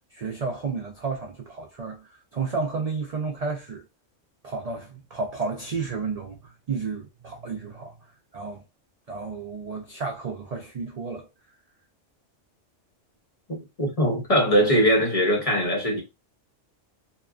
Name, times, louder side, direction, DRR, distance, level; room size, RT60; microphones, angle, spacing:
voice 1, 0.1-3.8 4.4-8.0 8.3-8.6 9.1-11.3, right 4 dB, 75° right, 0.3 m, -32 dB
voice 2, 13.8-16.0, equal, 40° left, 0.5 m, -21 dB
3.0 x 2.2 x 2.3 m
omnidirectional pair, 1.3 m